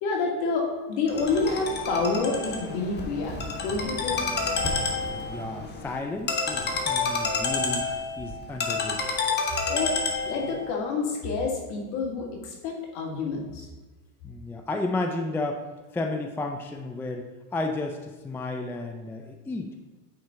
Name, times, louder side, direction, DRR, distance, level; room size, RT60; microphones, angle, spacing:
voice 1, 0.0-4.2 9.7-10.0 10.2-13.7, left 4 dB, 65° left, -1 dB, 2.3 m, -28 dB
Ringtone, 1.1-10.6, left 4 dB, 25° left, 1.1 m, -29 dB
voice 2, 5.1-9.1 14.2-15.6 15.9-19.7, left 2 dB, 5° left, 5 dB, 0.4 m, -33 dB
9.0 x 4.4 x 3.7 m, 1.2 s
supercardioid pair, 110°, 41 cm